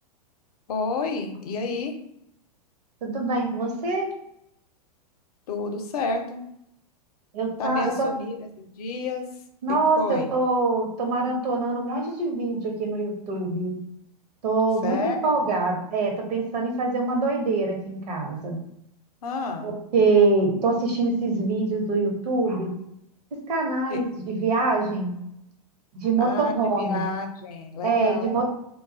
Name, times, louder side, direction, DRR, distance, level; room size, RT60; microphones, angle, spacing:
voice 1, 0.7-1.9 5.5-6.4 7.6-9.3 10.0-10.3 14.8-15.3 19.2-19.7 23.9-24.0 26.2-28.4, left 3 dB, 65° left, 5 dB, 0.6 m, -30 dB
voice 2, 3.0-4.1 7.3-8.1 9.6-13.7 14.4-18.6 19.6-22.7 23.5-25.1 25.9-27.0 27.8-28.4, right 3 dB, 75° right, 1 dB, 0.8 m, -24 dB
2.3 x 2.2 x 2.5 m, 0.76 s
hypercardioid pair, 110°, 21 cm